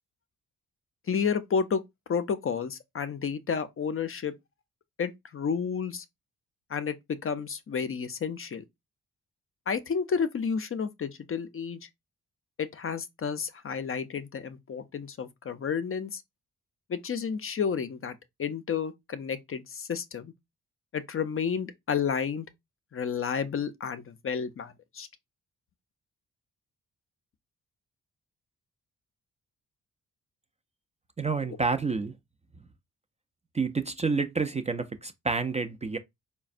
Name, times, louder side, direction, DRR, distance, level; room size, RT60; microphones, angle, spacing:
voice 1, 1.1-1.8 2.1-4.3 5.0-6.0 6.7-8.6 9.7-11.8 12.6-16.2 16.9-20.3 20.9-22.5 22.9-25.1, left 6 dB, 40° left, 0.5 m, -31 dB
voice 2, 31.2-32.1 33.5-36.0, right 4 dB, 20° right, 0.4 m, -29 dB
3.9 x 2.1 x 2.5 m
supercardioid pair, 55°, 35 cm